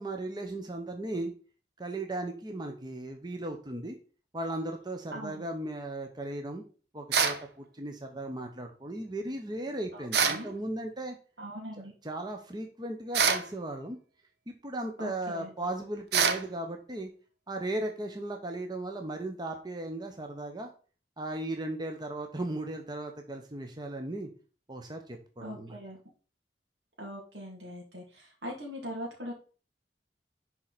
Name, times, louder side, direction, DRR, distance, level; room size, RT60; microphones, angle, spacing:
voice 1, 0.0-1.3 1.8-4.0 4.3-6.6 6.9-11.2 11.8-14.0 14.5-17.1 17.5-20.7 21.2-24.3 24.7-25.8, right 1 dB, 25° right, 4 dB, 0.9 m, -36 dB
voice 2, 5.1-5.5 9.9-10.5 11.4-11.9 15.0-15.5 25.4-26.0 27.0-29.3, equal, 90° right, -2 dB, 2.4 m, -41 dB
sound 1, 7.1-7.4 10.1-10.4 13.1-13.5 16.1-16.4, right 6 dB, 65° right, 0.9 m, -25 dB
11.0 x 4.4 x 4.1 m, 0.38 s
head